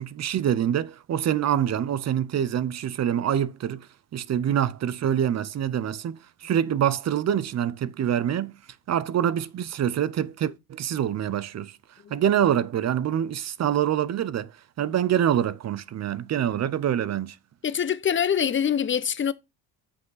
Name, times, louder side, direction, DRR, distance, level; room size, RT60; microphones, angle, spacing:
voice 1, 0.0-3.9 4.1-8.6 8.9-11.7 12.1-14.5 14.8-17.4, right 10 dB, 40° right, 0.6 m, -25 dB
voice 2, 17.6-19.3, left 8 dB, 30° left, 0.7 m, -24 dB
7.9 x 5.6 x 3.9 m
cardioid pair, 100°, 42 cm